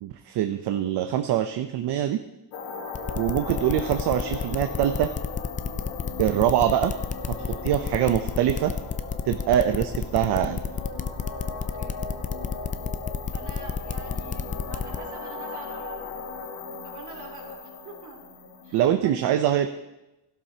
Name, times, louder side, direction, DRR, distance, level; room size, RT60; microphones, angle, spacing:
voice 1, 0.0-2.2 3.2-5.1 6.2-6.9 7.3-7.4 7.6-8.7 9.3-10.6 18.7-19.7, right 11 dB, 65° right, 8 dB, 0.7 m, -24 dB
sound 1, 2.5-18.9, left 5 dB, 85° left, 1.4 m, -38 dB
sound 2, 2.9-15.0, left 6 dB, 20° left, 0.3 m, -30 dB
voice 2, 11.5-12.0 13.3-16.1 16.8-18.2 18.6-19.2, right 5 dB, 40° right, -2 dB, 3.3 m, -45 dB
16.0 x 11.5 x 2.8 m, 0.99 s
cardioid pair, 130°, 43 cm